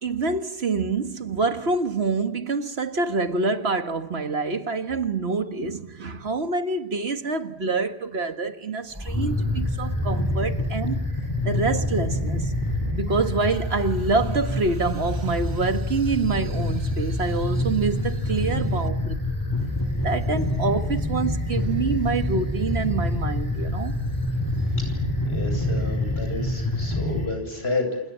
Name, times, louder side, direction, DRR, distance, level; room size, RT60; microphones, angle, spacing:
voice 1, 0.0-11.1 11.5-12.5 13.0-19.1 20.0-23.9, right 3 dB, 80° right, 1.8 m, -26 dB
sound 1, 8.9-27.3, left 1 dB, 20° left, 6.6 m, -26 dB
voice 2, 25.2-28.0, left 3 dB, 80° left, 8.0 m, -30 dB
29.0 x 27.0 x 7.5 m
omnidirectional pair, 1.1 m